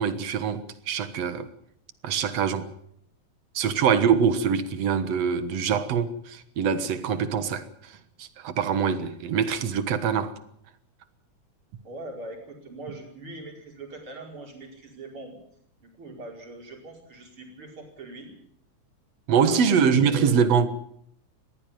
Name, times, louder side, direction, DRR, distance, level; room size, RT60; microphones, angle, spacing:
voice 1, 0.0-1.5 2.0-2.7 3.5-10.3 19.3-20.7, right 7 dB, 65° right, 2.4 m, -24 dB
voice 2, 11.8-15.4 15.8-18.3 19.3-20.5, right 2 dB, 45° right, 5.8 m, -41 dB
20.5 x 15.0 x 9.3 m
omnidirectional pair, 3.3 m